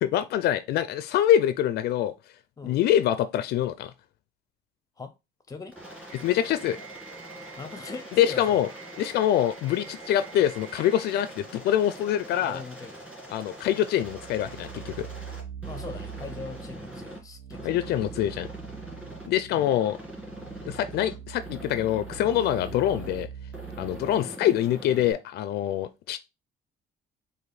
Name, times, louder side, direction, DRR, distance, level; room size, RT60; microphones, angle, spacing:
voice 1, 0.0-2.1 2.6-3.9 6.2-6.8 8.2-8.7 9.0-12.6 13.3-15.1 17.6-18.5 19.2-20.0 20.6-23.3 23.8-26.2, left 11 dB, 75° left, 0.4 m, -25 dB
Aircraft, 5.7-17.2 17.5-19.3 19.5-21.1 21.4-23.2 23.5-25.1, right 1 dB, 5° right, 2.3 m, -43 dB
sound 1, 6.1-11.1, right 9 dB, 45° right, 1.8 m, -48 dB
voice 2, 7.5-8.6 12.3-13.1 15.6-17.7 19.5-19.7 24.2-24.4, left 4 dB, 20° left, 0.7 m, -40 dB
sound 2, 14.0-24.2, right 8 dB, 80° right, 1.1 m, -43 dB
4.8 x 2.6 x 4.0 m
cardioid pair, 110°, 17 cm